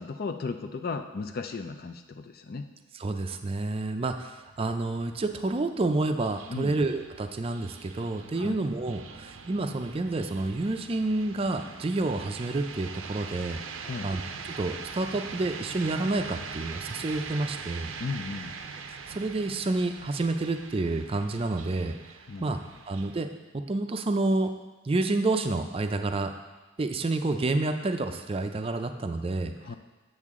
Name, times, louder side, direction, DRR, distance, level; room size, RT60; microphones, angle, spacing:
voice 1, 0.0-2.7 6.5-6.8 8.4-8.6 13.8-14.1 18.0-18.5 22.3-22.6 29.6-29.8, left 4 dB, 50° left, 7 dB, 0.5 m, -35 dB
voice 2, 3.0-13.6 14.0-14.2 14.5-17.9 19.1-22.0 22.4-22.6 22.9-23.3 23.5-24.5 24.8-26.3 26.8-29.5, right 2 dB, 30° right, 6 dB, 0.4 m, -29 dB
sound 1, 4.3-23.2, right 5 dB, 75° right, 0.6 m, -43 dB
8.4 x 6.9 x 3.6 m, 1.2 s
head